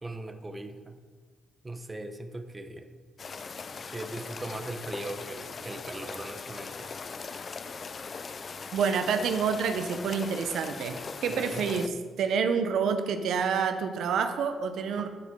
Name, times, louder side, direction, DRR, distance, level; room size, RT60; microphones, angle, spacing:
voice 1, 0.0-1.0 1.6-2.9 3.9-6.9 11.3-11.7 15.0-15.1, right 2 dB, 20° right, 7 dB, 0.8 m, -39 dB
sound 1, 3.2-11.9, left 5 dB, 40° left, 0.5 m, -40 dB
voice 2, 8.7-11.9 12.2-15.1, right 6 dB, 75° right, 8 dB, 0.7 m, -28 dB
10.0 x 8.3 x 3.7 m, 1.5 s
cardioid pair, 90°, 0 cm